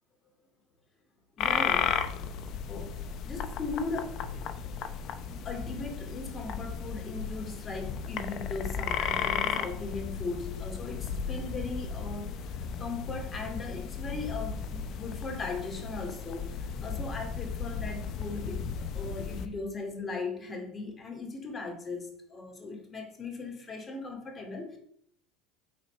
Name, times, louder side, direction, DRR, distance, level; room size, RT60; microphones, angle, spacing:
sound 1, 1.4-19.5, left 7 dB, 50° left, 0.7 m, -34 dB
voice 1, 1.4-2.0 2.7-2.9 3.2-4.4 5.4-24.8, left 3 dB, 25° left, 3 dB, 2.3 m, -38 dB
8.5 x 4.2 x 5.4 m, 0.66 s
supercardioid pair, 115°, 0 cm